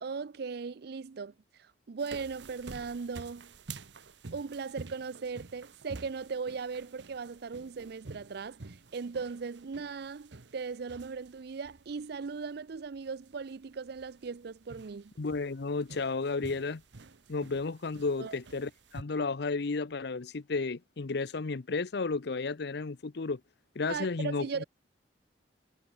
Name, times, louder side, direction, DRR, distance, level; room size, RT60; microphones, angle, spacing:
voice 1, 0.0-1.3 1.6-3.5 4.3-15.1 18.2-18.4 23.9-24.6, right 5 dB, 65° right, 0.5 m, -38 dB
sound 1, 2.0-19.0, right 3 dB, 85° right, 1.1 m, -50 dB
voice 2, 15.2-16.8 17.3-23.4 23.8-24.6, left 4 dB, 65° left, 0.7 m, -33 dB
head